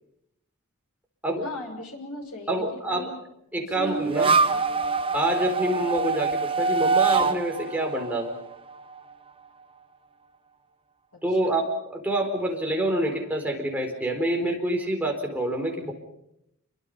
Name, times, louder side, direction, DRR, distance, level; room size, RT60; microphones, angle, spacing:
voice 1, 1.4-2.6 2.9-3.2 3.5-4.6 11.3-11.6, left 2 dB, 90° left, 3 dB, 6.3 m, -39 dB
voice 2, 2.5-3.1 3.5-4.4 5.1-8.3 11.2-11.6 11.9-15.9, right 1 dB, 5° right, 1 dB, 4.4 m, -27 dB
sound 1, 3.8-9.0, right 4 dB, 25° right, 0.8 m, -24 dB
28.5 x 24.0 x 5.4 m, 0.79 s
head